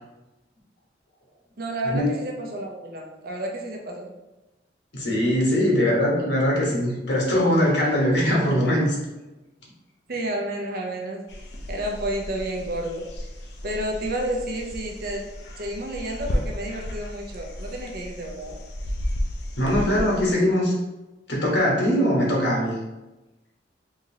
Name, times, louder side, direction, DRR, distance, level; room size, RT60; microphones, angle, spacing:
voice 1, 1.6-4.1 10.1-11.2 11.7-13.1 13.6-15.3 15.6-18.6, right 1 dB, 55° right, 1 dB, 0.6 m, -30 dB
voice 2, 4.9-8.9 19.6-20.7 21.3-22.7, equal, 85° left, -3 dB, 1.2 m, -21 dB
sound 1, 11.3-20.3, equal, 65° left, 0.5 m, -33 dB
3.7 x 2.9 x 2.8 m, 1.0 s
head